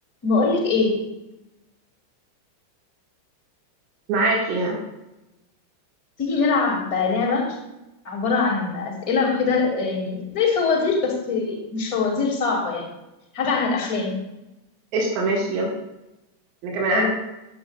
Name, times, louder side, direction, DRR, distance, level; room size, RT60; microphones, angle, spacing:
voice 1, 0.2-1.1 6.2-7.6 8.0-12.9 13.3-14.2 16.9-17.1, left 4 dB, 35° left, -1 dB, 2.5 m, -23 dB
voice 2, 4.1-4.8 14.9-15.7 16.6-17.1, right 2 dB, 40° right, -2 dB, 1.9 m, -22 dB
11.0 x 7.6 x 2.5 m, 0.94 s
figure-of-eight pair, 90°, 0 cm